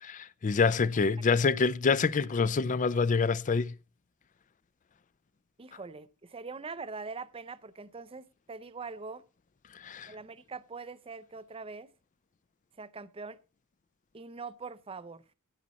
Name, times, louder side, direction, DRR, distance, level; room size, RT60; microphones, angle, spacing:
voice 1, 0.0-3.7 9.8-10.1, left 4 dB, 35° left, 0.4 m, -26 dB
voice 2, 5.6-9.2 10.1-11.9 12.8-13.4 14.1-15.2, right 4 dB, 25° right, 0.6 m, -43 dB
15.5 x 7.4 x 4.1 m
head